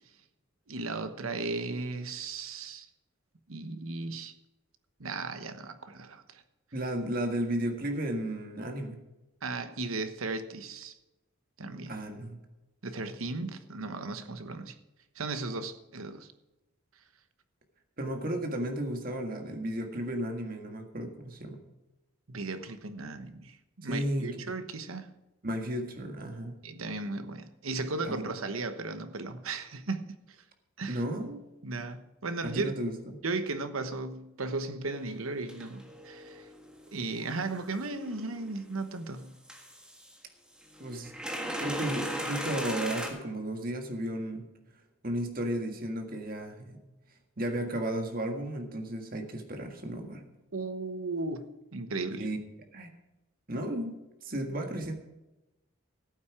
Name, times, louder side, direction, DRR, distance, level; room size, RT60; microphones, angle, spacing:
voice 1, 0.7-2.9 3.5-4.3 5.0-6.4 9.4-11.0 11.6-12.0 12.8-14.8 15.1-16.3 22.3-25.1 26.6-30.1 30.8-31.0 31.6-32.7 33.2-36.5 36.9-39.4 50.5-51.4 51.7-52.3, right 3 dB, 85° right, 1.1 m, -36 dB
voice 2, 6.7-9.0 11.9-12.4 18.0-21.6 23.8-24.6 25.4-26.6 28.0-28.3 30.9-31.4 32.4-33.2 40.8-44.5 45.0-46.8 47.4-50.2 52.2-52.4 52.7-52.9 53.5-54.9, right 1 dB, 45° right, 1.8 m, -34 dB
sound 1, 34.9-35.0 35.5-38.8 39.5-40.2 40.6-43.1, equal, 5° right, 1.5 m, -38 dB
14.5 x 8.9 x 4.9 m
head